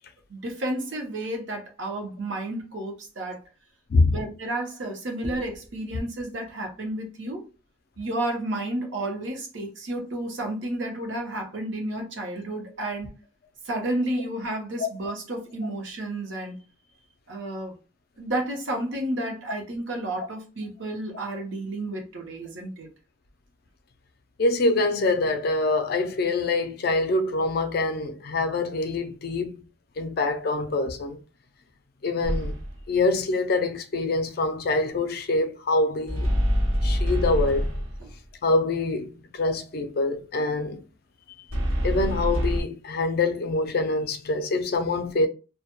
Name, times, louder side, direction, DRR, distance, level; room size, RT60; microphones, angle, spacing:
voice 1, 0.3-3.4 4.1-7.4 8.0-13.1 13.7-16.6 17.3-17.7 18.2-22.9 38.0-38.1, right 1 dB, 65° right, 0.7 m, -31 dB
voice 2, 3.9-4.2 14.8-14.9 24.4-29.6 30.0-31.2 32.0-32.6 32.9-36.3 36.8-37.7 38.4-40.8 41.8-45.3, left 2 dB, 50° left, 0.4 m, -25 dB
sound 1, 32.2-32.8 36.1-38.1 41.5-42.6, equal, 85° right, 1.0 m, -25 dB
2.2 x 2.1 x 2.9 m
head